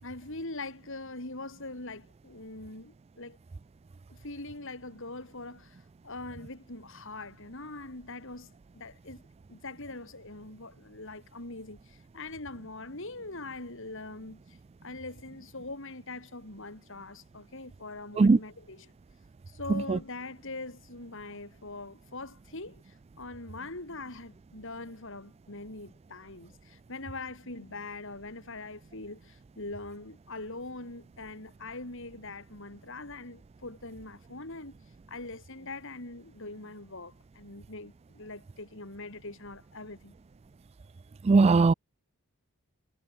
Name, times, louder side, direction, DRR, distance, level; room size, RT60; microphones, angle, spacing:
voice 1, 0.0-3.4 4.1-9.2 9.5-18.9 19.5-34.8 35.1-40.2, left 2 dB, 60° left, 4.1 m, -42 dB
voice 2, 41.3-41.7, right 4 dB, 30° right, 0.3 m, -18 dB
head